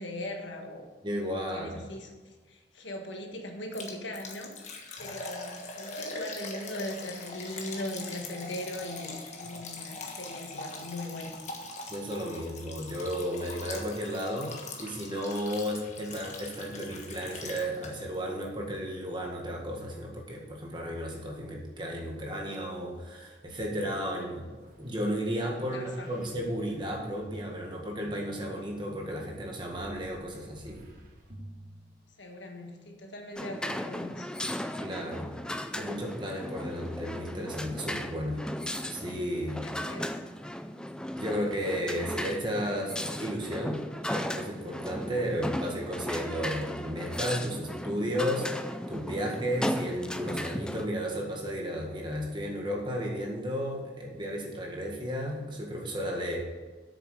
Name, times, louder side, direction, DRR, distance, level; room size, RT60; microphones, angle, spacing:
voice 1, 0.0-0.9 1.5-11.3 24.1-24.4 25.7-26.1 32.2-34.3 39.6-40.2, left 1 dB, 85° left, 3 dB, 1.5 m, -40 dB
voice 2, 1.0-1.9 5.0-5.1 11.9-24.5 24.8-30.8 34.8-35.3 35.8-38.4 38.9-39.7 41.2-42.9 43.2-43.8 44.1-48.5 48.9-56.4, equal, 25° right, 0 dB, 1.8 m, -33 dB
Liquid, 3.7-18.1 18.4-18.5 19.0-19.1, left 3 dB, 40° left, 1.3 m, -42 dB
sound 1, 23.9-28.5 29.2-32.5 33.3-33.4, right 1 dB, 45° right, 2.0 m, -52 dB
sound 2, 33.4-50.9, left 1 dB, 5° left, 0.4 m, -36 dB
8.5 x 6.9 x 6.6 m, 1.3 s
head